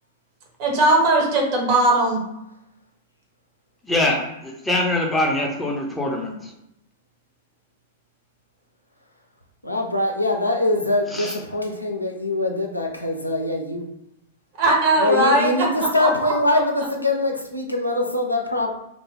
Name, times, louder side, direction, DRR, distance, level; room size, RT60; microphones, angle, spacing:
voice 1, 0.6-2.2 14.6-15.7 16.0-16.6, right 2 dB, 40° right, -2 dB, 1.0 m, -19 dB
voice 2, 3.8-6.5 11.1-11.4, left 1 dB, 5° left, -1 dB, 0.6 m, -23 dB
voice 3, 9.6-13.9 15.0-18.7, left 2 dB, 85° left, 1 dB, 0.4 m, -23 dB
2.4 x 2.2 x 3.3 m, 0.85 s
figure-of-eight pair, 100°, 0 cm